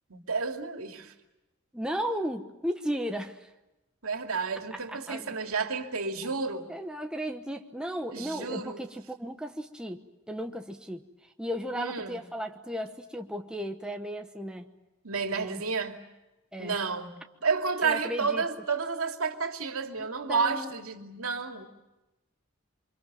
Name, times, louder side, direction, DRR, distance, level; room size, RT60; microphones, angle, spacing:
voice 1, 0.1-1.1 4.0-6.7 8.1-8.9 11.7-12.2 15.0-16.0 16.6-21.7, right 5 dB, 85° right, 2.7 m, -31 dB
voice 2, 1.7-3.5 4.7-5.4 6.7-14.7 15.3-15.6 16.5-16.8 17.8-18.4 20.0-20.7, equal, 5° right, 1.1 m, -35 dB
29.0 x 25.0 x 7.5 m
head